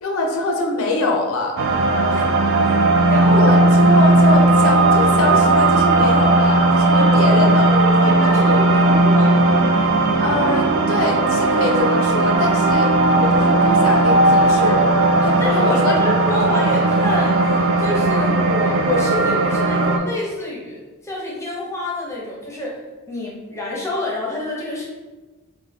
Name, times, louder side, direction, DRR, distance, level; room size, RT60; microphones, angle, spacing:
voice 1, 0.0-1.5 3.3-7.7 10.2-12.9 13.2-16.0, left 2 dB, 75° left, 1 dB, 0.5 m, -24 dB
sound 1, 1.6-20.0, right 2 dB, 65° right, 0.4 m, -16 dB
voice 2, 3.0-3.6 7.1-7.4 7.7-9.3 11.4-11.5 15.4-22.8 23.1-24.9, left 2 dB, 15° left, -4 dB, 0.7 m, -27 dB
3.1 x 2.2 x 3.9 m, 1.2 s
head